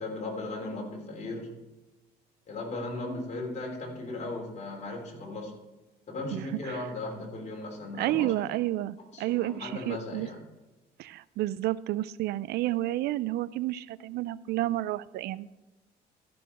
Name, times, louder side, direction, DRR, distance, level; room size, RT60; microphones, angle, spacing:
voice 1, 0.0-1.5 2.5-5.5 6.1-8.6 9.1-10.5, left 2 dB, 45° left, 0 dB, 3.4 m, -37 dB
voice 2, 8.0-10.3 11.0-15.5, right 15 dB, 75° right, 19 dB, 0.4 m, -30 dB
13.5 x 6.1 x 5.8 m, 1.1 s
cardioid pair, 110°, 17 cm